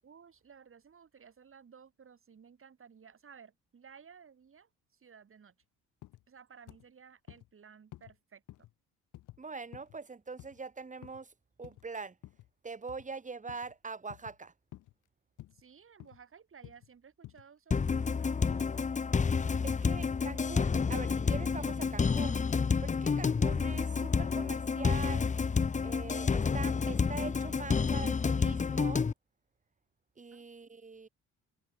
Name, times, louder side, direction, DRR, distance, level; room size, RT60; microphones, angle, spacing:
voice 1, 0.0-5.6 6.3-8.7 15.5-18.4 30.3-30.5, right 6 dB, 45° right, 7.7 m, -56 dB
sound 1, 6.0-6.3 6.7-6.9 7.3-7.5 7.9-8.2 8.5-8.7 9.1-9.4 9.7-10.0 10.4-10.6 11.0-11.2 11.6-11.9 12.2-12.5 12.9-13.1 13.5-13.7 14.1-14.4 14.7-14.9 15.4-15.6 16.0-16.2 16.6-16.9 17.2-17.5 17.9-18.2 18.5-18.6, left 15 dB, 85° left, 3.1 m, -51 dB
voice 2, 9.4-11.3 11.6-12.2 12.6-14.5 19.6-22.4 22.8-25.3 25.8-29.1 30.2-31.1, right 4 dB, 25° right, 2.4 m, -43 dB
sound 2, 17.7-29.1, left 5 dB, 25° left, 0.8 m, -29 dB
cardioid pair, 90°, 30 cm